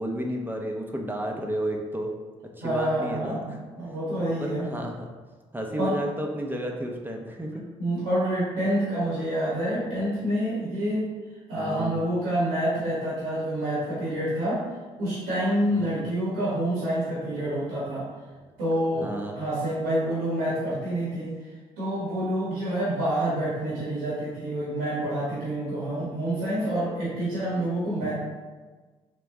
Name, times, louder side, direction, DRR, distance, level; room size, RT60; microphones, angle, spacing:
voice 1, 0.0-2.1 2.6-3.6 4.2-5.1 5.5-7.6 11.6-12.0 15.7-16.0 18.9-19.4 28.0-28.1, right 1 dB, 15° right, 1 dB, 0.8 m, -32 dB
voice 2, 2.6-3.5 3.8-4.7 5.8-5.9 7.8-11.0 11.5-14.6 15.0-18.0 18.6-28.1, right 1 dB, 80° right, -8 dB, 1.2 m, -27 dB
3.3 x 3.0 x 3.5 m, 1.3 s
hypercardioid pair, 45°, 15 cm